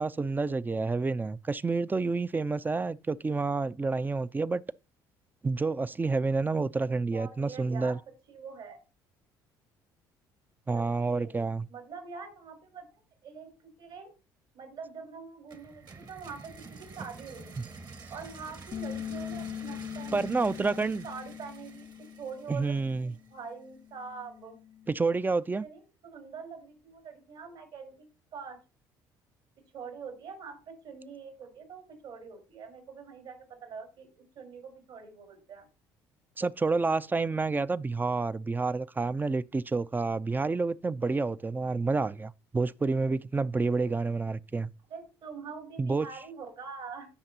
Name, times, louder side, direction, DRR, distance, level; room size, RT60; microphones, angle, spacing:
voice 1, 0.0-4.6 5.4-8.0 10.7-11.7 20.1-21.0 22.5-23.1 24.9-25.7 36.4-44.7 45.8-46.1, right 3 dB, 20° right, 0.5 m, -29 dB
voice 2, 7.1-8.0 8.3-8.8 10.7-12.9 13.2-14.1 14.5-16.5 16.8-17.7 18.1-20.3 20.6-20.7 21.0-21.9 22.2-22.7 23.0-24.6 25.6-27.9 28.3-28.6 29.7-35.7 44.9-47.1, right 5 dB, 70° right, 4.3 m, -44 dB
sound 1, 15.5-23.3, right 4 dB, 45° right, 1.4 m, -49 dB
Bass guitar, 18.7-25.0, left 10 dB, 40° left, 0.4 m, -42 dB
16.5 x 5.8 x 2.8 m
supercardioid pair, 70°, 10 cm